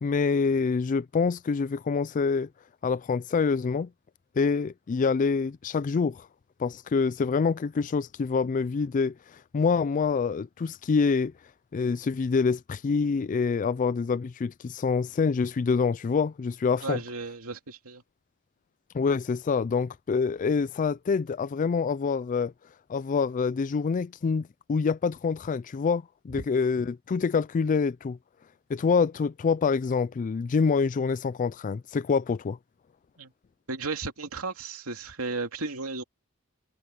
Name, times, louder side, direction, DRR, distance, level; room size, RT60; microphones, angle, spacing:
voice 1, 0.0-2.5 2.8-3.9 4.4-6.3 6.6-11.3 11.7-17.0 18.9-22.5 22.9-28.2 28.7-32.6, left 5 dB, 40° left, 0.3 m, -26 dB
voice 2, 16.8-18.0 33.2-33.3 33.7-36.0, right 3 dB, 85° right, 2.7 m, -34 dB
head